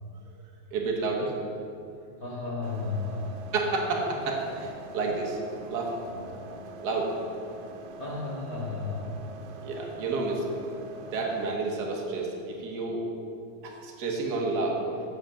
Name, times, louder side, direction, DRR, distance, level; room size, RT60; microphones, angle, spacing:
voice 1, 0.7-1.3 3.5-5.4 5.7-6.0 6.8-7.1 9.6-10.4 11.0-13.0 13.6-14.8, right 3 dB, 60° right, 0 dB, 1.0 m, -30 dB
voice 2, 1.7-3.3 5.6-5.7 6.1-6.4 8.0-9.2, left 3 dB, 80° left, -7 dB, 0.6 m, -34 dB
sound 1, 2.6-11.6, right 2 dB, 85° right, 2.0 m, -44 dB
8.0 x 5.8 x 6.3 m, 2.4 s
omnidirectional pair, 3.3 m